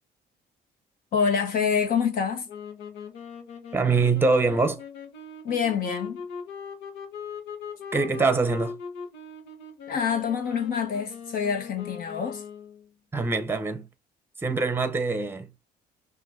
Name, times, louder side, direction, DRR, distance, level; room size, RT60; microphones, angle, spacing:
voice 1, 1.1-2.5 5.4-6.2 9.9-12.4, left 6 dB, 60° left, 1.4 m, -26 dB
sound 1, 2.5-12.9, left 5 dB, 85° left, 1.2 m, -40 dB
voice 2, 3.7-4.8 7.9-8.8 13.1-13.9 14.4-15.5, right 4 dB, 15° right, 0.8 m, -24 dB
5.8 x 2.6 x 2.7 m
cardioid pair, 110°, 17 cm